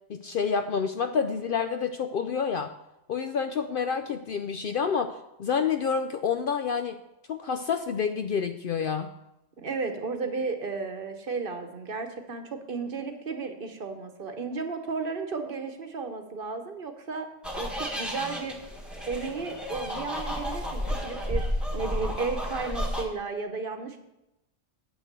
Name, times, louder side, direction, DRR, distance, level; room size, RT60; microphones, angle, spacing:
voice 1, 0.1-2.7 3.1-5.1 5.4-7.0 7.3-9.1, left 6 dB, 60° left, 8 dB, 0.6 m, -28 dB
voice 2, 9.6-17.3 17.5-18.6 19.1-21.5 21.7-24.0, right 4 dB, 50° right, 7 dB, 1.1 m, -33 dB
sound 1, 17.4-23.0, equal, ahead, 1.2 m, -32 dB
8.1 x 6.3 x 6.6 m, 0.90 s
omnidirectional pair, 1.2 m